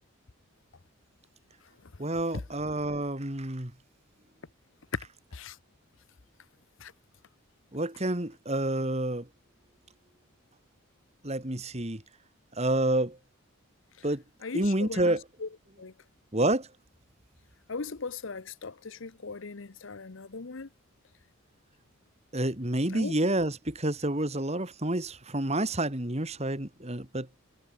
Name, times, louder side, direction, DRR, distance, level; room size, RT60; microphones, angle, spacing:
voice 1, 2.0-3.7 7.7-9.3 11.2-12.0 12.6-13.2 14.0-14.2 14.5-15.2 16.3-16.7 22.3-27.3, right 1 dB, 30° right, 2.4 m, -29 dB
voice 2, 14.4-15.1 15.4-15.5 15.8-15.9 17.7-20.7 22.9-23.2, left 4 dB, 65° left, 0.8 m, -38 dB
head